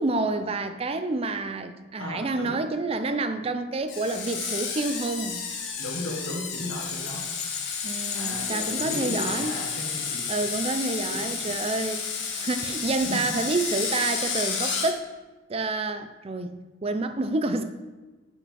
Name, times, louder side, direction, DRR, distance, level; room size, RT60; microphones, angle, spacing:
voice 1, 0.0-5.4 7.8-9.6 10.3-12.0 12.3-15.0 15.5-17.6, right 3 dB, 30° right, 9 dB, 0.4 m, -28 dB
voice 2, 2.0-2.5 5.8-7.2 8.1-10.2 11.0-11.5 13.0-13.2, left 1 dB, 85° left, 0 dB, 1.6 m, -35 dB
Screech, 3.9-14.9, left 6 dB, 60° left, 1.1 m, -31 dB
sound 1, 4.1-9.4, left 8 dB, 35° left, 0.6 m, -39 dB
6.5 x 5.1 x 5.5 m, 1.2 s
head